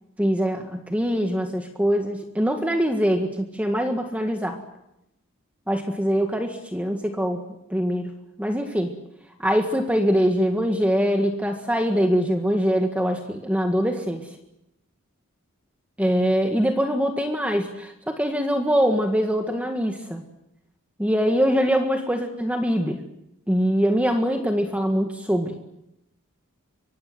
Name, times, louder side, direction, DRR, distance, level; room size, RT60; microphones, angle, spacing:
voice 1, 0.2-4.6 5.7-7.4 7.7-8.1 8.4-8.9 9.4-14.3 16.0-20.2 21.0-23.0 23.5-25.6, equal, 5° right, 4 dB, 1.8 m, -23 dB
25.5 x 23.5 x 7.9 m, 0.85 s
head